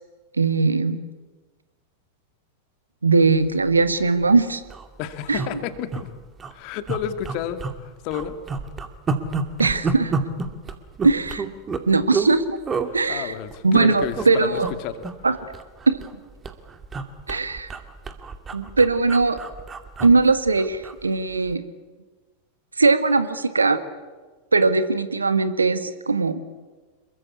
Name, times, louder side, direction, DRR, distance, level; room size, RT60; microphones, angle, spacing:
voice 1, 0.4-1.0 3.0-4.6 5.3-5.4 9.6-10.1 11.0-11.5 11.9-12.6 12.9-13.3 13.6-14.7 15.2-15.4 17.3-17.7 18.5-19.4 20.0-21.6 22.8-23.8 24.5-26.4, right 3 dB, 75° right, 11 dB, 1.7 m, -20 dB
sound 1, 3.9-4.1 4.3-4.4 4.6-4.9 5.3-6.0 6.4-6.5 6.9-7.8 8.1-12.3 12.7-12.9 13.5-14.3 14.6-14.8 15.0-16.2 16.4-21.0 21.3-21.5, right 4 dB, 20° right, 2.4 m, -29 dB
voice 2, 5.0-6.1 6.5-8.4 12.9-15.0, left 10 dB, 45° left, 9 dB, 2.2 m, -31 dB
27.0 x 22.5 x 8.6 m, 1.3 s
figure-of-eight pair, 90°, 0 cm